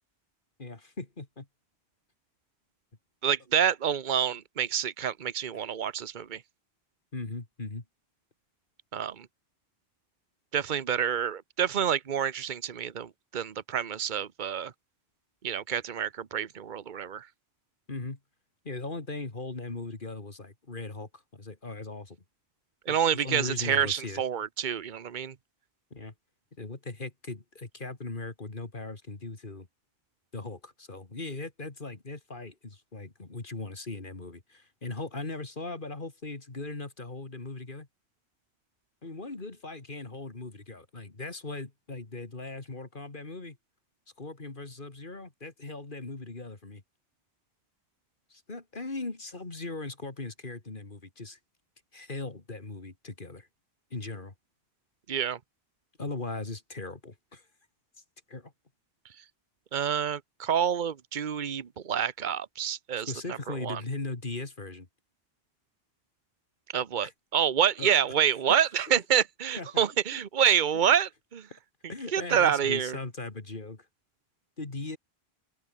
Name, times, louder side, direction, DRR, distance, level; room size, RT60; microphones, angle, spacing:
voice 1, 0.6-1.5 7.1-7.8 17.9-18.2 18.6-22.2 22.9-24.2 25.9-26.1 26.6-29.7 30.3-37.9 39.0-43.6 44.2-46.8 48.3-51.4 51.9-53.5 53.9-54.3 56.0-57.5 58.3-58.5 63.0-64.9 67.0-67.1 67.8-67.9 68.7-68.8 69.6-69.8 70.1-70.2 71.9-73.9 74.6-75.0, left 3 dB, 50° left, 2.7 m, -39 dB
voice 2, 3.2-6.4 8.9-9.3 10.5-14.7 15.4-17.3 22.9-25.3 55.1-55.4 59.7-63.1 63.5-63.8 66.7-71.5 72.1-73.0, right 8 dB, 50° right, 1.1 m, -27 dB
open air
omnidirectional pair, 1.1 m